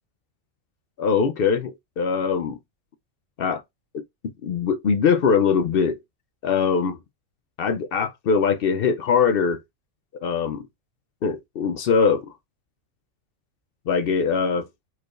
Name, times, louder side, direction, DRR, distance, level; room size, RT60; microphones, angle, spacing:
voice 1, 1.0-2.6 3.4-3.6 3.9-4.0 4.4-6.0 6.4-7.0 7.6-9.6 10.2-10.6 11.2-12.3 13.9-14.7, left 6 dB, 65° left, 0.6 m, -22 dB
4.6 x 4.5 x 2.4 m
omnidirectional pair, 1.4 m